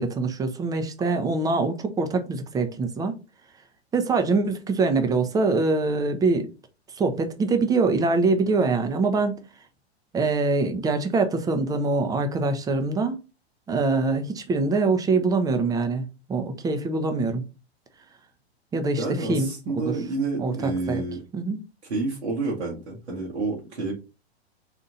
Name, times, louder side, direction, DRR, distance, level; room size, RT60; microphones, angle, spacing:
voice 1, 0.0-3.1 3.9-6.5 7.0-9.4 10.1-13.2 13.7-17.4 18.7-19.5 19.7-19.9 20.4-21.0 21.3-21.6, right 3 dB, 10° right, 0.6 m, -24 dB
voice 2, 19.0-21.2 21.8-23.9, right 3 dB, 85° right, 1.7 m, -29 dB
4.3 x 2.5 x 3.8 m
hypercardioid pair, 110°, 33 cm